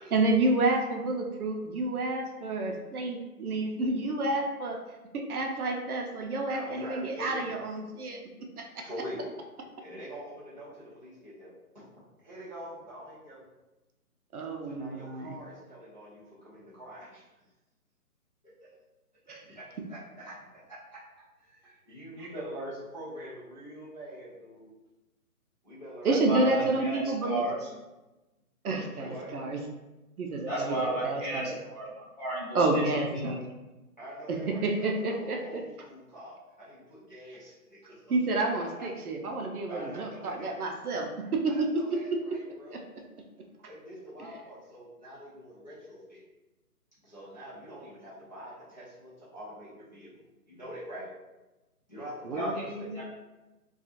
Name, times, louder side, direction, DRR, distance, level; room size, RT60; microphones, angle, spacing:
voice 1, 0.1-4.8 5.1-8.2 8.6-8.9 14.3-15.3 19.3-19.4 22.2-22.3 26.0-27.4 28.6-29.6 30.2-31.6 32.5-33.5 34.3-35.6 38.1-42.2 42.7-43.3 52.2-53.0, right 2 dB, 70° right, 2 dB, 0.5 m, -30 dB
voice 2, 6.5-7.4 8.8-9.3 9.8-13.5 14.6-17.2 18.4-18.7 19.3-21.0 21.4-24.7 25.6-27.5 28.9-29.3 34.0-38.2 38.5-38.9 39.7-40.5 41.5-42.8 43.6-46.2 47.0-50.1 50.5-51.1 51.9-52.9, equal, 30° left, -10 dB, 0.6 m, -45 dB
voice 3, 26.1-27.7 30.5-33.3 52.4-52.5 52.9-53.0, right 1 dB, 25° right, -10 dB, 1.0 m, -33 dB
2.8 x 2.3 x 2.4 m, 1.1 s
hypercardioid pair, 175°, 46 cm